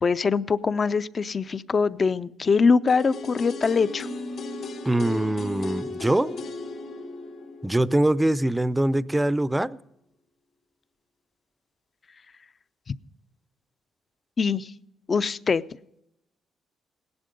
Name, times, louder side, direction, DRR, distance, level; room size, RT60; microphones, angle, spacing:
voice 1, 0.0-4.1 14.4-14.7 15.1-15.6, left 5 dB, 35° left, 16 dB, 0.5 m, -23 dB
sound 1, 2.9-8.8 9.1-9.2, left 2 dB, 65° left, 3.0 m, -36 dB
voice 2, 4.8-6.4 7.6-9.8, right 1 dB, 10° right, 17 dB, 0.5 m, -23 dB
17.5 x 11.5 x 5.2 m, 0.81 s
cardioid pair, 100°, 0 cm